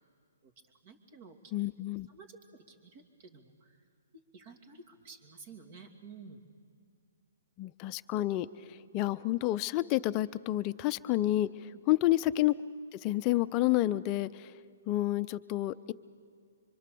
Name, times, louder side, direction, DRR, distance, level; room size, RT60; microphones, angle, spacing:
voice 1, 0.8-1.5 2.1-3.8 4.1-6.4, right 4 dB, 45° right, 6 dB, 2.7 m, -52 dB
voice 2, 1.5-2.1 7.6-12.5 12.9-14.5 14.9-15.9, left 15 dB, 30° left, 13 dB, 0.6 m, -30 dB
25.0 x 24.5 x 6.9 m, 2.1 s
hypercardioid pair, 150°, 0 cm